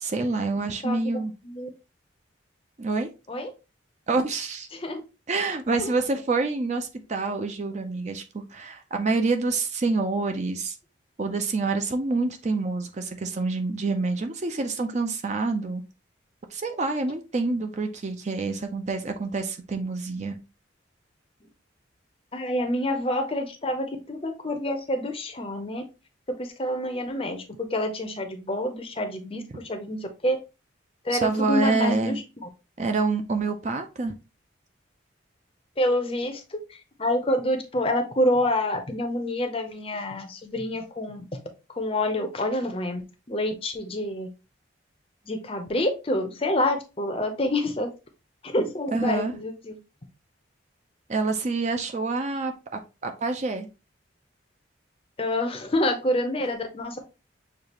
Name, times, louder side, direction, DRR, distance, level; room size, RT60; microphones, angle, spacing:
voice 1, 0.0-1.3 2.8-3.1 4.1-4.7 5.3-10.8 11.2-15.8 16.5-20.4 31.1-32.2 32.8-34.1 48.9-49.3 51.1-52.5 53.0-53.7, right 3 dB, 35° right, 0.4 m, -27 dB
voice 2, 0.8-1.7 3.3-3.5 4.7-5.0 5.7-5.9 22.3-25.8 26.4-30.4 31.0-32.2 35.8-41.2 41.8-44.3 45.3-47.9 48.4-49.8 55.2-57.0, left 1 dB, 30° left, 0.6 m, -27 dB
6.6 x 2.4 x 2.9 m
head